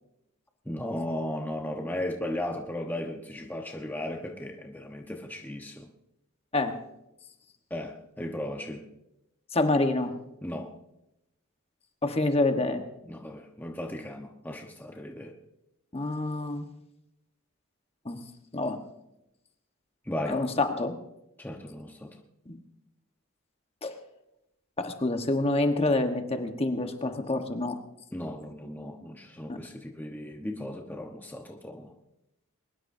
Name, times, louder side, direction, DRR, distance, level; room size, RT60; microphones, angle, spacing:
voice 1, 0.7-5.9 7.7-8.9 10.4-10.7 13.1-15.3 20.1-20.4 21.4-22.1 28.1-31.9, left 1 dB, 10° left, 2 dB, 1.0 m, -36 dB
voice 2, 9.5-10.1 12.0-12.8 15.9-16.7 18.0-18.2 18.5-18.8 20.3-21.0 22.5-22.6 23.8-24.0 24.8-27.8 29.5-29.6, left 2 dB, 25° left, 6 dB, 1.2 m, -27 dB
22.5 x 20.5 x 2.7 m, 0.87 s
head